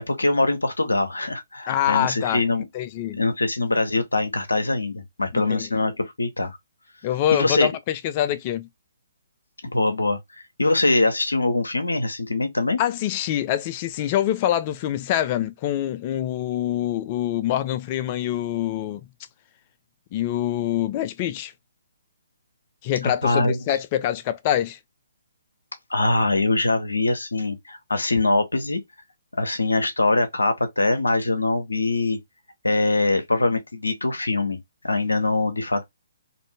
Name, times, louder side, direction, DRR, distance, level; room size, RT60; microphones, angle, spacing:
voice 1, 0.0-2.7 3.2-6.6 7.3-7.7 9.6-12.8 23.2-23.6 25.9-28.8 29.3-32.2 32.6-34.6 34.8-35.8, left 2 dB, 75° left, 0.7 m, -23 dB
voice 2, 1.7-2.4 2.7-3.2 5.5-5.7 7.0-8.7 12.8-19.0 20.1-21.5 22.8-24.8, left 11 dB, 30° left, 0.3 m, -25 dB
2.6 x 2.5 x 3.2 m
figure-of-eight pair, 130°, 0 cm